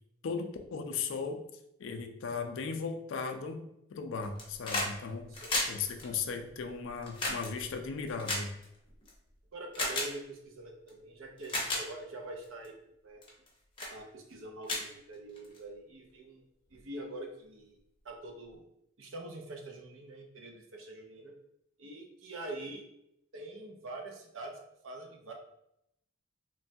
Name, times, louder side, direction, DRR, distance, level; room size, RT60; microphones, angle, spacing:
voice 1, 0.2-1.4 1.8-3.6 3.9-5.3 5.7-8.5, left 5 dB, 70° left, 5 dB, 0.4 m, -36 dB
sound 1, 4.2-4.9 5.2-9.1 9.7-10.1 10.9-11.0 11.4-11.8 12.4-12.7 13.2-13.5 13.8-13.9 14.3-14.4 14.6-15.6 16.7-16.8, left 2 dB, 25° left, 0.6 m, -34 dB
voice 2, 5.3-5.6 9.5-12.8 13.0-13.2 13.9-16.4 16.7-17.8 18.0-18.6 19.0-21.3 21.8-22.8 23.3-25.3, right 2 dB, 75° right, 2 dB, 0.5 m, -44 dB
3.1 x 2.2 x 2.6 m, 0.79 s
head